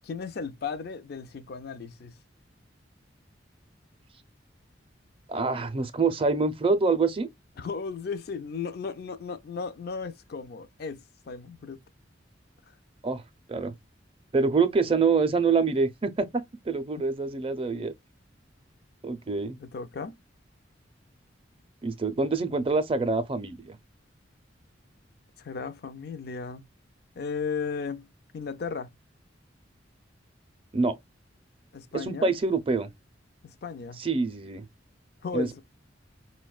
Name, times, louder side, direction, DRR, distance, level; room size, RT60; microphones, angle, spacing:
voice 1, 0.0-2.1 7.6-11.8 12.7-12.8 17.0-17.1 19.6-20.2 25.4-26.7 27.2-28.1 28.3-28.9 31.7-32.3 33.4-34.0 35.2-35.6, left 5 dB, 55° left, 0.4 m, -35 dB
voice 2, 5.3-7.3 13.0-13.2 13.5-13.7 14.3-17.9 19.0-19.6 21.8-23.8 30.7-31.0 31.9-32.9 34.0-34.6 35.3-35.6, right 4 dB, 30° right, 0.4 m, -26 dB
4.7 x 2.1 x 2.3 m
head